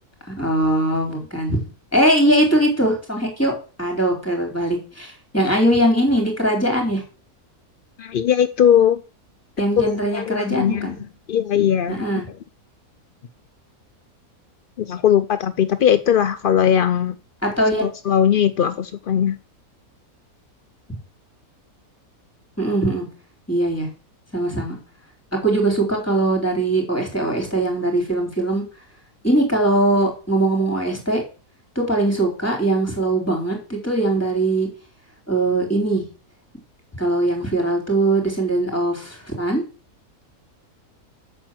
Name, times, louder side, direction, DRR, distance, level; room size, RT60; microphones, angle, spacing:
voice 1, 0.3-1.6 1.9-3.5 3.8-7.0 9.6-11.0 11.9-12.2 17.4-17.8 22.6-23.1 23.5-23.9 24.3-24.8 25.4-28.6 29.2-31.2 31.8-34.7 35.3-36.0 37.0-39.6, right 1 dB, 10° left, 3.9 m, -21 dB
voice 2, 8.0-9.0 9.8-10.9 11.3-12.2 14.8-17.2 17.8-19.4, left 9 dB, 60° left, 0.5 m, -19 dB
8.8 x 6.6 x 7.6 m
omnidirectional pair, 1.6 m